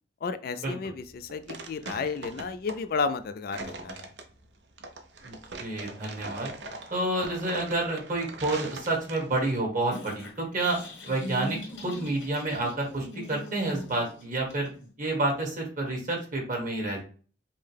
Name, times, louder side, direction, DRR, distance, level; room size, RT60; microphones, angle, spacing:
voice 1, 0.2-4.1, left 5 dB, 55° left, 11 dB, 0.3 m, -32 dB
sound 1, 1.0-9.5, right 2 dB, 65° right, 0.7 m, -42 dB
voice 2, 5.2-6.5 6.9-14.7 15.0-17.0, right 2 dB, 45° right, 0 dB, 1.6 m, -29 dB
Cleaning teeth, 9.9-14.9, equal, 80° left, 1.4 m, -41 dB
5.4 x 2.1 x 3.3 m, 0.39 s
head